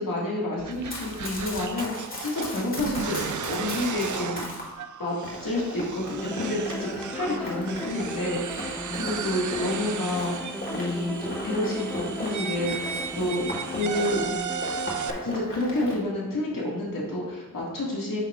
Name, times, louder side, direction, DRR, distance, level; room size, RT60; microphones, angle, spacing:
voice 1, 0.0-3.2 3.5-4.7 5.0-5.1 5.4-14.2 15.2-18.2, left 1 dB, 80° left, -5 dB, 2.1 m, -29 dB
sound 1, 0.6-15.1, right 7 dB, 65° right, 0.4 m, -36 dB
Run, 0.7-4.7 5.2-14.3 14.6-16.0, left 1 dB, 40° left, 2.0 m, -37 dB
sound 2, 6.2-14.9, equal, 5° left, 0.6 m, -37 dB
8.9 x 5.8 x 2.5 m, 1.1 s
wide cardioid pair, 110°, 33 cm